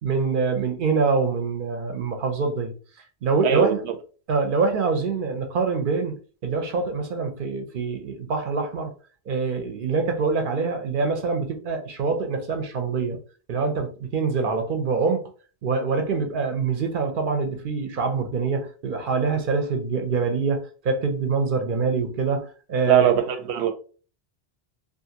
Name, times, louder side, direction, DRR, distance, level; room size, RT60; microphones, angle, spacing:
voice 1, 0.0-2.7 3.2-3.8 4.3-8.9 9.3-13.2 13.5-15.3 15.6-23.1, right 4 dB, 60° right, 0.7 m, -25 dB
voice 2, 3.4-3.9 22.9-23.7, right 9 dB, 90° right, 0.8 m, -20 dB
2.5 x 2.4 x 2.7 m
omnidirectional pair, 1.1 m